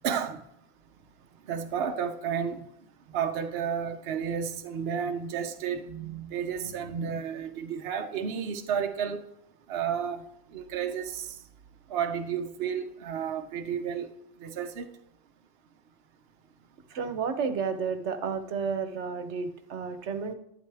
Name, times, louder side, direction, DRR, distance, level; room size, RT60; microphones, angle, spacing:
voice 1, 0.0-0.4 1.5-2.6 3.1-5.8 6.3-9.3 9.7-10.2 10.5-11.3 11.9-14.1 14.4-14.9, right 7 dB, 65° right, 1.0 m, -31 dB
voice 2, 5.9-7.2 16.9-20.3, right 5 dB, 90° right, 1.1 m, -33 dB
11.5 x 9.4 x 3.4 m
omnidirectional pair, 1.1 m